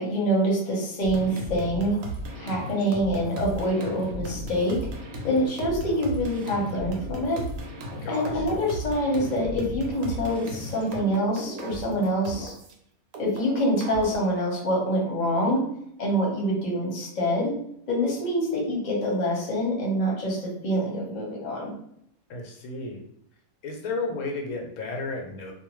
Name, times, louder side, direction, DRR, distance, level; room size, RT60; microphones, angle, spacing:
voice 1, 0.0-2.0 2.4-4.8 5.2-7.4 8.1-12.5 13.2-15.6 16.0-17.5 17.9-21.7, equal, 35° left, -3 dB, 0.8 m, -26 dB
sound 1, 1.0-12.7 13.1-14.2, right 1 dB, 85° right, 1.1 m, -36 dB
voice 2, 8.0-8.6 22.3-23.0 23.6-25.5, left 3 dB, 90° left, 2 dB, 1.1 m, -33 dB
2.5 x 2.2 x 3.0 m, 0.70 s
omnidirectional pair, 1.5 m